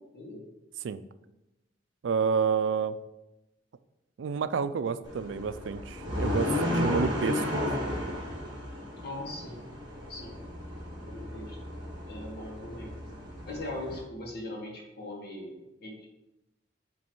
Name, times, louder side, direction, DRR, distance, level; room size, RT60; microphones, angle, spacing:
voice 1, 2.0-3.0 4.2-7.6, right 6 dB, 75° right, 13 dB, 0.4 m, -29 dB
sound 1, 5.0-14.0, left 1 dB, 25° right, 2.3 m, -34 dB
voice 2, 9.0-9.7 10.1-10.4 11.0-11.6 12.1-12.9 13.4-16.1, left 1 dB, 60° left, -2 dB, 1.5 m, -40 dB
9.1 x 3.1 x 4.6 m, 0.95 s
head